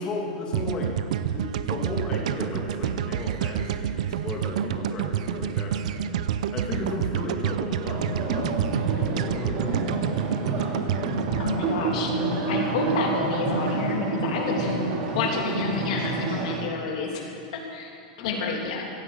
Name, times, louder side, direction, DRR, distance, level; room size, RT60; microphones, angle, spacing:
voice 1, 0.0-10.2 18.2-18.5, left 2 dB, 20° left, -1 dB, 2.4 m, -35 dB
sound 1, 0.5-12.7, right 10 dB, 70° right, 0.6 m, -28 dB
voice 2, 6.7-7.1 11.4-12.1 12.5-18.9, left 4 dB, 60° left, 0 dB, 3.0 m, -30 dB
sound 2, 7.9-16.6, right 2 dB, 40° right, 2.7 m, -28 dB
15.5 x 9.2 x 8.2 m, 2.6 s
supercardioid pair, 165°, 4 cm